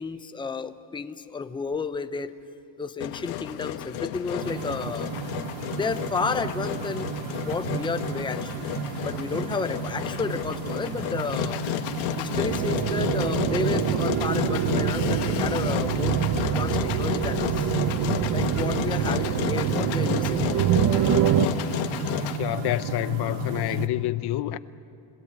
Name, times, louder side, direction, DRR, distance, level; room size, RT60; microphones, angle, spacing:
voice 1, 0.0-2.3 2.8-5.1 5.7-7.1 7.4-8.7 9.0-11.6 12.2-17.7 18.3-20.7, left 4 dB, 10° left, 0.7 m, -32 dB
Engine, 3.0-22.4, left 12 dB, 85° left, 1.4 m, -31 dB
sound 1, 4.4-23.9, right 7 dB, 75° right, 1.6 m, -34 dB
sound 2, 12.3-21.5, right 10 dB, 50° right, 1.0 m, -25 dB
voice 2, 22.3-24.6, left 15 dB, 55° left, 0.8 m, -27 dB
30.0 x 18.0 x 8.9 m
cardioid pair, 125°, 46 cm